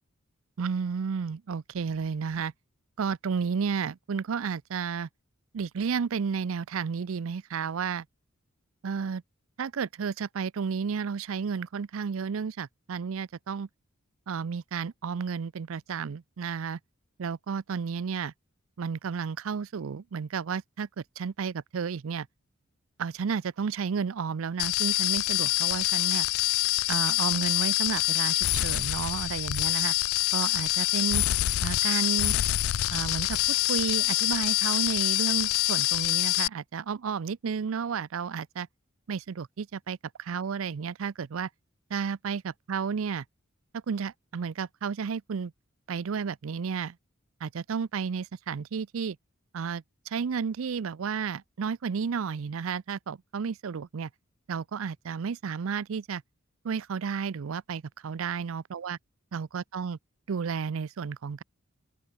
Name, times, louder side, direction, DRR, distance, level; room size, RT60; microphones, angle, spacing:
voice 1, 0.6-2.5 3.0-5.1 5.5-8.1 8.8-9.2 9.6-13.7 14.3-16.8 17.2-18.3 18.8-22.3 23.0-26.3 26.9-29.9 30.3-31.2 31.6-32.4 32.9-38.7 39.1-41.5 41.9-43.2 43.9-45.5 45.9-47.0 47.4-49.2 49.5-54.1 54.5-56.2 56.6-59.0 59.3-60.0 60.3-61.4, right 6 dB, 75° right, 0.5 m, -32 dB
sound 1, 24.6-36.5, left 17 dB, 80° left, 0.4 m, -26 dB
open air
head